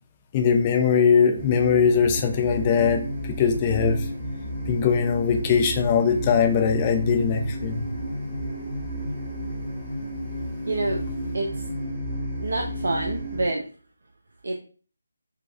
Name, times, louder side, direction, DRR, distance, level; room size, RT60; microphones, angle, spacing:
voice 1, 0.3-4.1 4.7-7.9, left 6 dB, 25° left, 5 dB, 0.4 m, -21 dB
sound 1, 1.3-13.5, equal, 15° right, 1.0 m, -32 dB
voice 2, 10.7-11.0 11.3-11.7 12.4-13.7 14.4-14.5, right 2 dB, 70° right, 2 dB, 0.5 m, -27 dB
4.0 x 2.3 x 2.5 m, 0.39 s
figure-of-eight pair, 155°, 0 cm